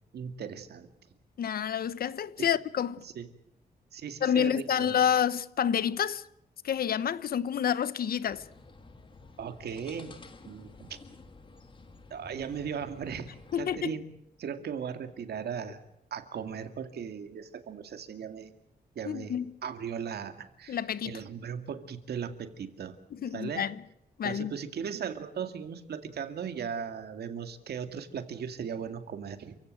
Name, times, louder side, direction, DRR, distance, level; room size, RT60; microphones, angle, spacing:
voice 1, 0.1-0.9 2.4-2.5 3.0-3.3 3.9-5.0 9.4-10.2 10.4-11.0 12.1-14.1 14.4-15.8 16.1-18.5 18.9-19.3 19.6-23.0 23.3-23.7 24.2-29.6, right 7 dB, 85° right, 2.4 m, -37 dB
voice 2, 1.4-3.0 4.2-6.2 6.6-8.4 13.5-13.9 19.0-19.5 20.7-21.2 23.1-23.7 24.2-24.5, left 8 dB, 70° left, 1.0 m, -28 dB
sound 1, 8.3-13.8, left 3 dB, 30° left, 2.1 m, -51 dB
29.5 x 16.0 x 7.6 m
wide cardioid pair, 175°, 16 cm